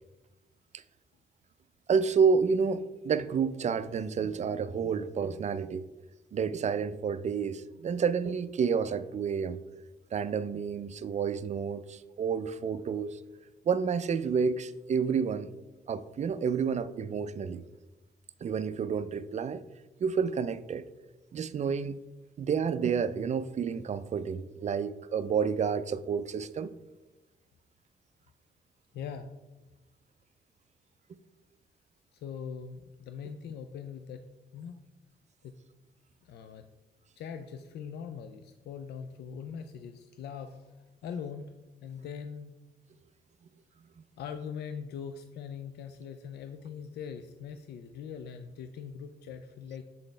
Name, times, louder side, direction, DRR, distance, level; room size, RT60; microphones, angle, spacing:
voice 1, 1.9-5.9 6.3-9.6 10.1-13.2 13.7-15.5 15.9-17.6 18.4-19.6 20.0-20.9 21.3-22.0 22.4-26.7, right 6 dB, 45° right, 0.4 m, -29 dB
voice 2, 28.9-29.3 32.1-34.3 34.5-34.7 35.4-35.6 36.2-36.6 37.2-41.5 41.8-42.5 44.2-49.8, left 7 dB, 85° left, 0.4 m, -41 dB
7.3 x 4.1 x 3.3 m
cardioid pair, 75°, 17 cm